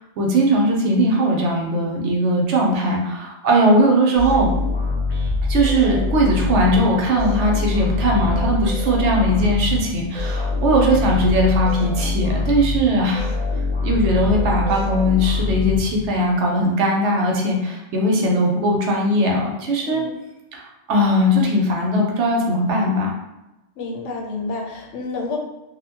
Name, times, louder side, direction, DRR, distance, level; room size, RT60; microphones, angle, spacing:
voice 1, 0.2-4.5 5.5-13.3 13.8-20.0 20.5-20.6 20.9-23.1, equal, 70° right, 0 dB, 0.9 m, -19 dB
sound 1, 4.1-16.4, left 3 dB, 35° right, 0.7 m, -24 dB
voice 2, 19.8-20.2 23.8-25.4, left 3 dB, 80° left, 1 dB, 0.9 m, -30 dB
2.7 x 2.1 x 2.8 m, 0.97 s
omnidirectional pair, 1.3 m